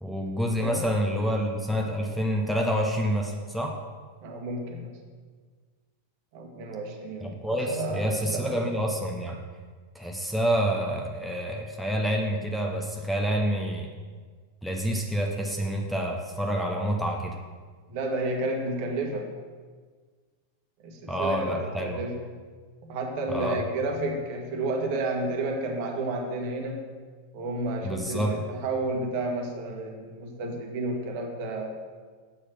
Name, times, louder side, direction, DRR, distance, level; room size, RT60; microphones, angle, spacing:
voice 1, 0.0-3.8 7.2-9.4 9.9-13.9 14.6-17.4 21.1-22.0 23.3-23.6 27.8-28.3, equal, ahead, 1 dB, 1.1 m, -28 dB
voice 2, 0.6-0.9 4.2-5.0 6.3-8.5 17.9-19.3 20.8-22.2 22.8-26.9 27.3-31.8, right 2 dB, 45° right, 2 dB, 1.5 m, -31 dB
8.2 x 6.4 x 6.1 m, 1.5 s
figure-of-eight pair, 90°, 0 cm